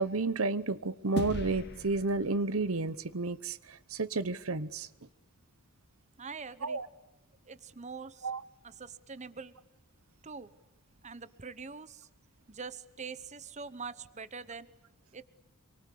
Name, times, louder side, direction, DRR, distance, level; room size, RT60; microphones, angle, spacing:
voice 1, 0.0-4.9 6.6-6.9 8.2-8.4, right 3 dB, 65° right, 15 dB, 0.9 m, -31 dB
sound 1, 1.2-3.8, left 1 dB, 50° left, 2.1 m, -39 dB
voice 2, 6.2-6.8 7.5-8.3 8.6-9.5 10.2-10.5 11.0-12.1 12.5-14.7 15.1-15.2, right 5 dB, 30° right, 15 dB, 1.0 m, -44 dB
27.0 x 24.0 x 8.5 m, 0.96 s
head